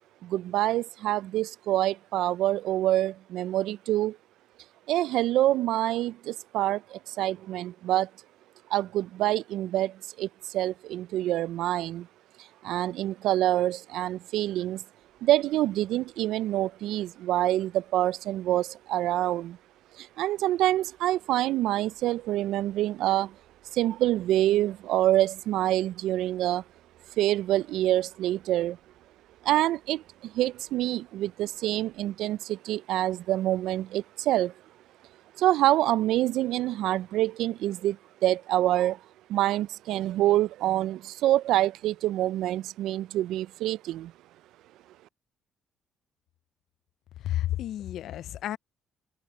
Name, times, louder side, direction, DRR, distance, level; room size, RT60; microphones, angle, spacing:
voice 1, 0.2-4.2 4.9-8.1 8.7-12.1 12.6-14.8 15.2-19.6 20.0-23.4 23.7-26.6 27.2-28.8 29.4-34.5 35.4-39.0 39.3-44.1, right 14 dB, 85° right, 0.3 m, -26 dB
sound 1, 15.0-32.1, right 12 dB, 65° right, 7.5 m, -67 dB
voice 2, 47.2-48.6, left 13 dB, 65° left, 0.3 m, -31 dB
cardioid pair, 165°, 0 cm